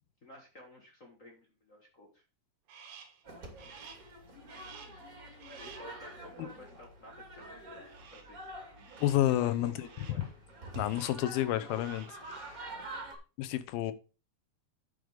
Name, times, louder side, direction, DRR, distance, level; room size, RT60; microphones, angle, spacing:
voice 1, 0.2-2.2 5.6-8.4 9.4-10.3 12.6-12.9, left 1 dB, 50° left, 0.9 m, -53 dB
Crow, 2.7-3.2 3.6-4.1 4.5-5.1 5.4-6.0 7.9-8.4 8.8-9.3 9.8-10.3 10.7-11.3 11.6-12.2, right 7 dB, 75° right, 3.2 m, -53 dB
sound 1, 3.2-13.2, right 1 dB, 30° right, 2.1 m, -47 dB
voice 2, 9.0-9.9 10.2-10.3 10.8-12.6 13.4-13.9, left 13 dB, 90° left, 2.7 m, -30 dB
9.9 x 5.2 x 5.0 m
omnidirectional pair, 4.2 m